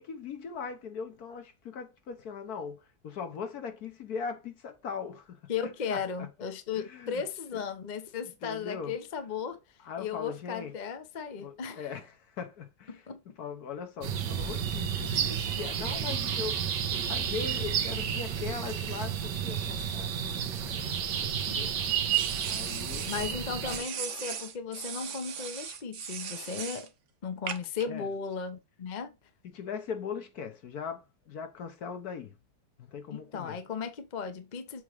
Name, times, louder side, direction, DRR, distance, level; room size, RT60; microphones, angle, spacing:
voice 1, 0.0-6.3 6.8-7.2 7.5-7.6 8.4-8.9 9.8-10.7 11.4-12.1 12.4-13.0 13.4-16.6 16.9-20.5 21.4-21.7 22.4-23.8 27.9-28.1 29.4-32.3 32.8-33.6, left 6 dB, 65° left, 1.4 m, -40 dB
voice 2, 5.5-9.6 10.0-11.9 12.9-13.2 23.1-26.9 27.2-29.1 33.1-34.8, left 6 dB, 40° left, 0.7 m, -36 dB
sound 1, 14.0-23.8, right 8 dB, 85° right, 1.5 m, -31 dB
sound 2, 20.5-21.5 22.1-23.3 23.7-26.9 27.5-27.8, right 8 dB, 55° right, 0.9 m, -39 dB
7.2 x 3.1 x 4.9 m
omnidirectional pair, 1.9 m